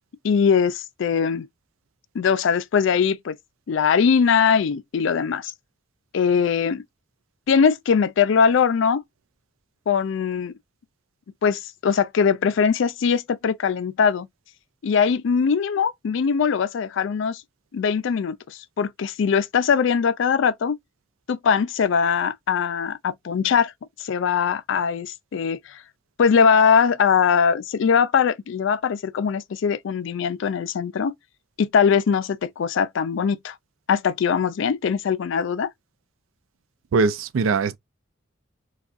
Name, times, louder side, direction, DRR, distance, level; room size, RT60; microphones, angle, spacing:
voice 1, 0.2-1.5 2.1-3.4 3.7-5.5 6.1-6.8 7.5-9.0 9.9-10.5 11.4-14.3 14.8-17.4 17.7-20.8 21.3-23.7 24.0-25.8 26.2-31.1 31.6-33.5 33.9-35.7, left 6 dB, 70° left, 0.4 m, -21 dB
voice 2, 36.9-37.8, right 4 dB, 90° right, 0.4 m, -21 dB
3.5 x 2.3 x 2.4 m
head